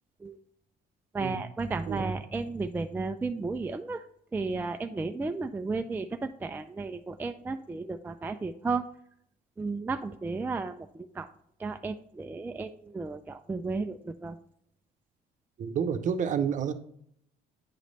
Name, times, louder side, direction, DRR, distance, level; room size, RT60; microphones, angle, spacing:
voice 1, 1.1-4.1 4.3-8.8 9.6-11.3 11.6-14.4, right 3 dB, 10° right, 7 dB, 0.3 m, -33 dB
voice 2, 15.6-16.7, right 7 dB, 50° right, 9 dB, 0.7 m, -29 dB
9.1 x 3.2 x 4.0 m, 0.68 s
cardioid pair, 110°, 17 cm